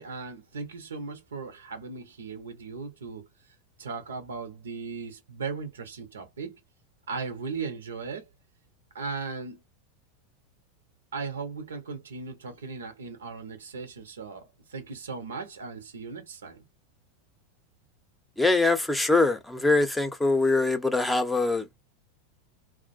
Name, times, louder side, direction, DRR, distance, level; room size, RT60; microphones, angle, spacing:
voice 1, 0.0-3.3 3.8-6.6 7.1-8.3 8.9-9.6 11.1-16.7, right 4 dB, 80° right, 0.7 m, -37 dB
voice 2, 18.4-21.8, left 3 dB, 5° left, 0.6 m, -23 dB
2.4 x 2.1 x 2.4 m
hypercardioid pair, 90°, 0 cm